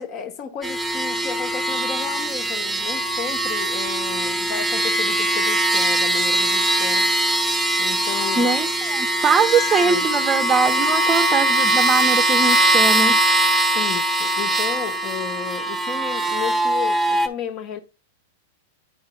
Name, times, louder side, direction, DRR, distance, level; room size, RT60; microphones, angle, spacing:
voice 1, 0.0-7.1 7.8-8.7 9.8-10.1 13.7-17.8, left 7 dB, 40° left, 1.3 m, -33 dB
sound 1, 0.6-17.3, right 1 dB, ahead, 1.2 m, -21 dB
Wind instrument woodwind instrument, 5.9-8.9 9.1-12.2, left 8 dB, 85° left, 2.0 m, -37 dB
voice 2, 8.3-13.2, right 5 dB, 20° right, 0.7 m, -22 dB
9.6 x 3.4 x 4.4 m
hypercardioid pair, 120°, 0 cm